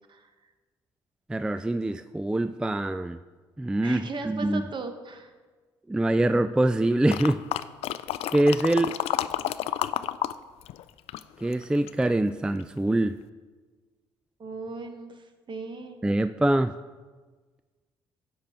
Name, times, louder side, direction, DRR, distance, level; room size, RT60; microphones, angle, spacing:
voice 1, 0.1-0.5 3.8-5.3 14.4-16.0, right 3 dB, 45° right, 6 dB, 1.3 m, -37 dB
voice 2, 1.3-3.2 3.6-4.6 5.9-7.4 8.3-9.0 11.4-13.2 16.0-16.7, right 1 dB, 10° right, 12 dB, 0.3 m, -24 dB
sound 1, 7.1-10.3 10.6-12.1 12.6-12.7, left 12 dB, 65° left, 0.4 m, -30 dB
10.0 x 6.1 x 4.5 m, 1.4 s
hypercardioid pair, 55°, 11 cm